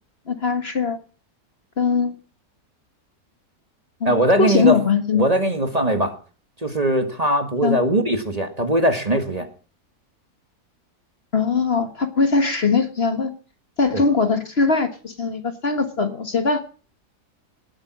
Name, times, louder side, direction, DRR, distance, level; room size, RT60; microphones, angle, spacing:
voice 1, 0.3-1.0 1.8-2.1 4.0-5.3 7.6-7.8 11.3-13.3 13.8-16.6, left 4 dB, 40° left, 8 dB, 1.7 m, -21 dB
voice 2, 4.1-4.8 5.1-6.1 6.6-9.5 13.9-14.0, right 1 dB, 25° right, 6 dB, 1.8 m, -20 dB
19.0 x 8.7 x 6.1 m, 0.38 s
omnidirectional pair, 1.6 m